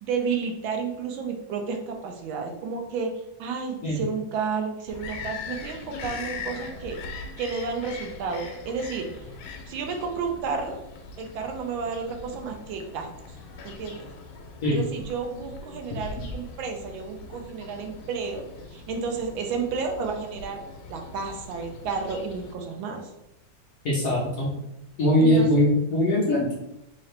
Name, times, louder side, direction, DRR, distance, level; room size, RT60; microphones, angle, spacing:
voice 1, 0.0-3.1 3.4-7.0 7.4-9.1 9.7-10.8 11.2-13.4 13.6-14.1 14.7-18.4 18.7-20.6 20.9-23.1 25.2-25.6, right 5 dB, 80° right, 3 dB, 1.4 m, -31 dB
Bird vocalization bird call bird song, 4.9-22.6, left 4 dB, 90° left, 1.4 m, -41 dB
voice 2, 23.8-24.5 25.0-26.5, left 1 dB, 65° left, -4 dB, 0.9 m, -21 dB
3.7 x 2.8 x 3.3 m, 0.90 s
omnidirectional pair, 2.2 m